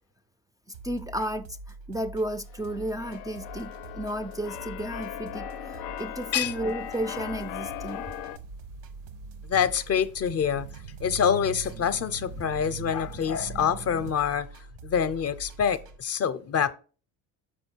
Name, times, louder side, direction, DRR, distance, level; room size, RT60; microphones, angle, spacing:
sound 1, 0.7-16.0, right 2 dB, 85° right, 1.1 m, -45 dB
voice 1, 0.8-1.6 1.9-8.1, right 1 dB, 10° right, 0.4 m, -33 dB
Keyboard (musical), 2.5-8.4, left 12 dB, 85° left, 0.5 m, -39 dB
sound 2, 6.8-14.1, right 9 dB, 60° right, 0.6 m, -43 dB
voice 2, 9.4-10.7 11.0-14.5 14.8-16.7, left 8 dB, 40° left, 0.6 m, -26 dB
6.3 x 5.1 x 4.5 m
cardioid pair, 95°, 38 cm